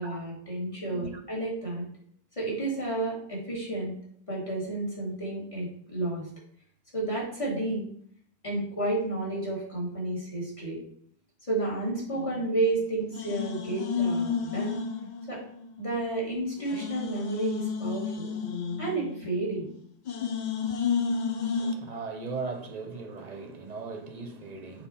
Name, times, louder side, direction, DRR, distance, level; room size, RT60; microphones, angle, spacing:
voice 1, 0.0-1.8 2.4-3.9 4.3-6.2 6.9-7.9 8.4-10.8 11.5-14.8 15.3-15.4 15.8-18.3 18.8-19.7, right 2 dB, 25° left, 2.7 m, -31 dB
sound 1, 12.1-12.8 13.1-15.7 16.0-16.1 16.6-19.7 20.1-21.7, left 6 dB, 50° left, 0.5 m, -32 dB
voice 2, 21.6-24.9, right 4 dB, 35° right, 0.8 m, -38 dB
6.8 x 3.8 x 5.5 m
omnidirectional pair, 1.3 m